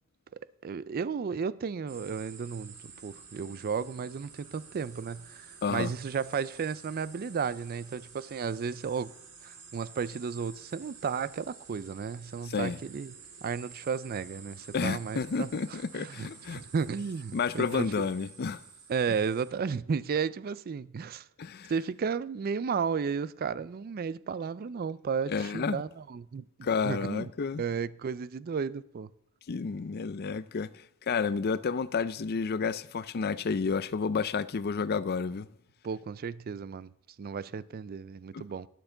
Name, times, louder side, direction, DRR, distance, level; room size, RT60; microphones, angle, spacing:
voice 1, 0.6-2.8 3.0-9.1 9.4-13.1 13.4-18.1 18.9-21.3 21.7-26.4 26.8-27.3 27.6-29.1 35.8-36.9 37.2-38.7, right 6 dB, 40° right, 0.3 m, -33 dB
sound 1, 1.9-19.5, right 5 dB, 85° right, 1.9 m, -51 dB
voice 2, 12.5-12.8 14.7-16.6 17.3-18.6 21.4-21.7 25.3-25.8 26.6-27.6 29.5-30.7 31.1-35.5 38.3-38.4, left 5 dB, 45° left, 0.4 m, -30 dB
11.5 x 11.0 x 3.8 m
head